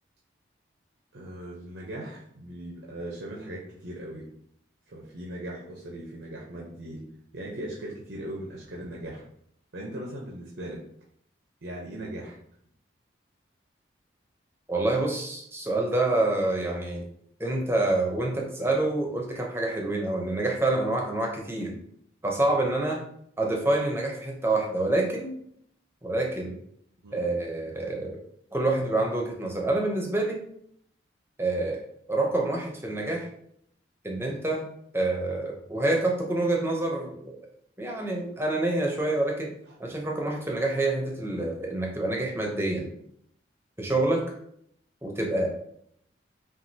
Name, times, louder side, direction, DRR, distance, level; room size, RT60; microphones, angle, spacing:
voice 1, 1.1-4.3 4.9-7.0 7.3-9.2 9.7-10.8 11.6-12.4 27.0-27.2, right 1 dB, 75° right, -4 dB, 0.8 m, -39 dB
voice 2, 14.7-17.0 17.4-21.7 22.2-23.0 23.4-25.4 26.0-26.6 27.1-28.2 28.5-30.4 31.4-31.8 32.1-33.3 34.0-34.7 34.9-37.5 37.8-39.5 39.8-42.9 43.8-44.2 45.0-45.5, right 2 dB, 15° right, -1 dB, 0.7 m, -27 dB
5.9 x 2.5 x 2.8 m, 0.69 s
head